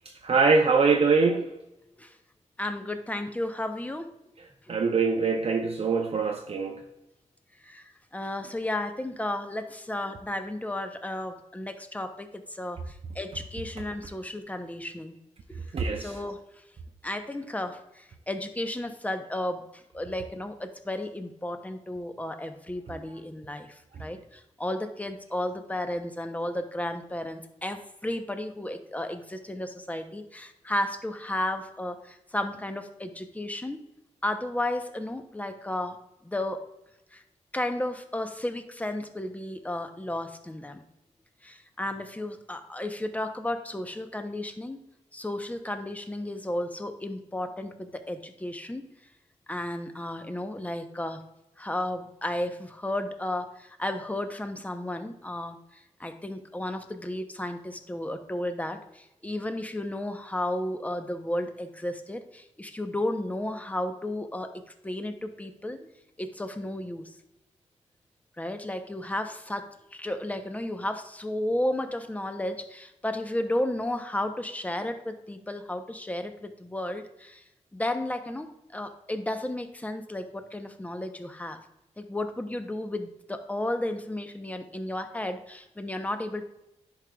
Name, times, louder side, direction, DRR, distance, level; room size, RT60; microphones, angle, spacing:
voice 1, 0.2-1.5 4.7-6.8 15.7-16.1, right 4 dB, 55° right, 3 dB, 0.6 m, -23 dB
voice 2, 2.6-4.1 7.6-15.2 15.5-15.6 16.0-16.4 17.0-33.8 34.2-36.0 36.2-36.6 37.1-37.2 37.5-40.8 41.4-44.8 45.1-48.8 49.5-51.2 51.6-55.6 56.0-65.9 66.2-67.1 68.4-77.4 77.7-81.6 82.0-86.5, left 1 dB, 10° left, 7 dB, 0.7 m, -33 dB
10.5 x 4.9 x 2.3 m, 0.89 s
cardioid pair, 80°, 12 cm